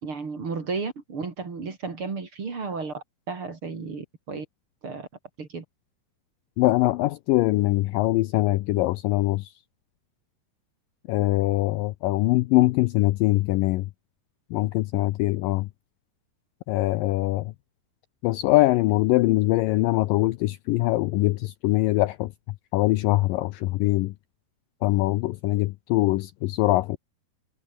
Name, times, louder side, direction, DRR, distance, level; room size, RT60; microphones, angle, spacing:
voice 1, 0.0-4.4 4.8-5.1 5.4-5.6, right 4 dB, 35° right, 3.5 m, -33 dB
voice 2, 6.6-9.5 11.1-13.9 14.5-15.7 16.7-17.5 18.2-22.3 22.7-24.1 24.8-27.0, left 18 dB, 90° left, 1.9 m, -23 dB
omnidirectional pair, 4.7 m